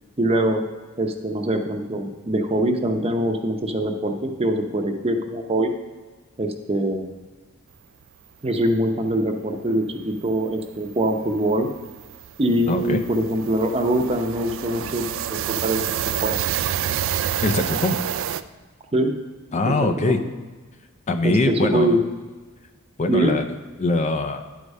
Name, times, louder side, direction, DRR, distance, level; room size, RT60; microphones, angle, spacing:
voice 1, 0.2-0.6 1.0-5.7 6.4-7.1 8.4-11.7 12.4-15.8 16.2-16.4 18.9-19.1 19.7-19.8 20.1-20.2 21.2-22.0 23.1-23.4, right 1 dB, 25° right, 4 dB, 0.7 m, -23 dB
sound 1, 10.0-10.1 10.4-10.6 10.9-18.4, right 10 dB, 60° right, 0.3 m, -28 dB
voice 2, 12.7-13.0 17.4-18.0 19.5-20.2 21.1-22.0 23.0-23.5 23.8-24.4, left 2 dB, 30° left, 7 dB, 0.4 m, -22 dB
10.0 x 4.8 x 5.3 m, 1.3 s
head